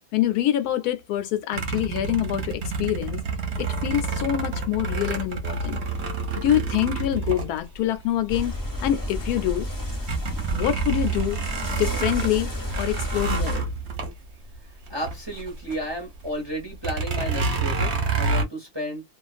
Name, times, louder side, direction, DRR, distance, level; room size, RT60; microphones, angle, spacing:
voice 1, 0.1-3.2 3.8-5.8 6.3-8.5 8.8-9.7 10.5-11.4 11.7-12.5 12.8-13.6, left 12 dB, 85° left, 1.1 m, -25 dB
sound 1, 1.5-8.2 8.7-8.8 9.2-15.9 16.1-16.3 16.8-18.4, right 4 dB, 55° right, 0.9 m, -28 dB
sound 2, 8.3-13.6, left 1 dB, 15° left, 0.8 m, -31 dB
voice 2, 14.9-19.0, equal, 25° right, 0.7 m, -32 dB
2.4 x 2.3 x 2.4 m
omnidirectional pair, 1.6 m